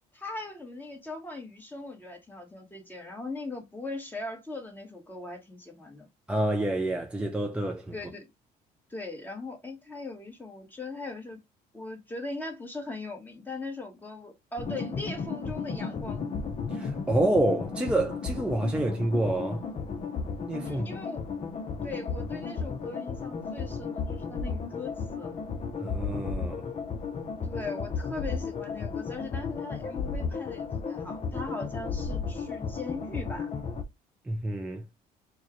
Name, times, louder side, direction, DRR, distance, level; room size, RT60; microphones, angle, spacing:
voice 1, 0.1-6.1 7.9-8.2 8.9-11.4 11.7-16.3 20.6-21.2 21.8-25.4 27.4-33.5, left 2 dB, 10° left, 1.3 m, -39 dB
voice 2, 6.3-7.9 16.7-19.6 20.5-20.8 25.8-26.7 34.3-34.8, right 1 dB, 5° right, 0.4 m, -28 dB
sound 1, 14.6-33.8, left 5 dB, 40° left, 0.7 m, -34 dB
4.5 x 2.3 x 3.0 m
cardioid pair, 110°, 17 cm